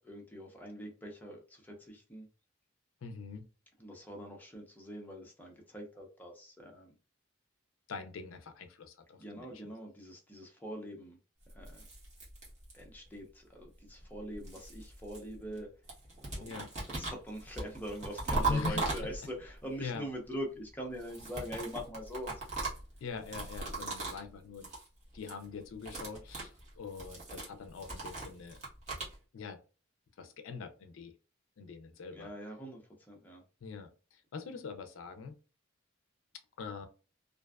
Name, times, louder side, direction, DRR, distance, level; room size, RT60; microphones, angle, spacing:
voice 1, 0.1-2.3 3.8-6.9 9.2-11.2 11.5-11.8 12.7-15.7 16.2-16.6 16.9-22.5 23.8-23.9 32.1-32.8 33.1-33.4, equal, 10° left, 0.6 m, -43 dB
voice 2, 3.0-3.5 7.9-9.6 16.4-16.7 18.4-18.9 19.8-20.0 23.0-24.7 25.1-28.6 29.3-29.6 30.2-31.1 31.6-32.3 33.6-35.4 36.6-36.9, left 4 dB, 75° left, 0.4 m, -42 dB
sound 1, 11.5-13.1 14.0-15.6 15.9-19.5 20.9-24.3 24.5-24.9 25.1-25.4 25.7-29.1, right 3 dB, 35° right, 1.1 m, -39 dB
2.5 x 2.2 x 2.3 m
head